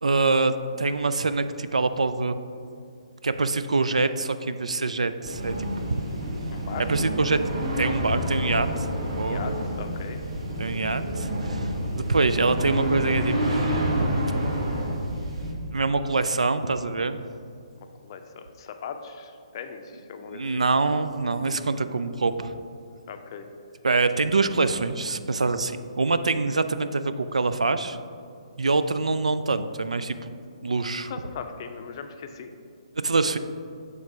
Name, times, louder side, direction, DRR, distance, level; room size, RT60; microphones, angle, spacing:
voice 1, 0.0-2.3 3.2-6.0 6.9-8.9 9.1-9.4 10.6-11.7 11.9-14.2 15.7-17.2 20.3-22.5 23.8-28.0 28.6-30.3 30.6-31.1 33.0-33.4, right 3 dB, 80° right, 11 dB, 0.3 m, -25 dB
sound 1, 5.2-15.5, equal, 60° right, 1.3 m, -28 dB
voice 2, 6.5-6.9 9.2-10.2 18.0-20.6 23.1-23.5 31.1-32.5, left 6 dB, 40° left, 6 dB, 0.5 m, -39 dB
7.0 x 3.2 x 4.9 m, 2.4 s
figure-of-eight pair, 135°, 3 cm